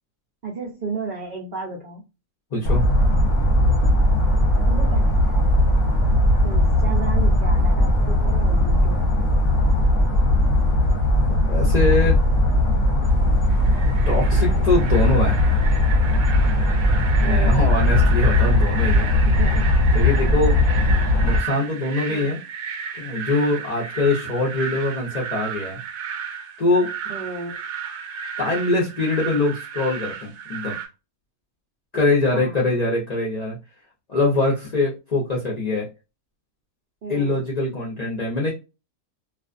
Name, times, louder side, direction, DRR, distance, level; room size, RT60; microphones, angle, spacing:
voice 1, 0.4-2.0 4.6-6.2 6.4-9.0 14.4-14.7 17.2-18.1 19.2-19.7 20.8-21.2 22.1-22.3 27.1-27.6 32.3-32.8 37.0-37.4, right 4 dB, 55° right, -2 dB, 0.5 m, -34 dB
voice 2, 2.5-2.9 11.5-12.2 14.1-15.4 17.2-19.1 19.9-20.7 21.1-22.4 23.0-25.8 26.6-26.9 28.4-30.7 31.9-33.6 34.1-35.9 37.1-38.5, left 2 dB, 45° left, -4 dB, 0.5 m, -23 dB
sound 1, 2.6-21.4, left 1 dB, 60° left, 1.0 m, -18 dB
sound 2, 13.5-30.9, right 7 dB, 70° right, 1.0 m, -33 dB
2.5 x 2.3 x 2.4 m, 0.27 s
omnidirectional pair, 1.6 m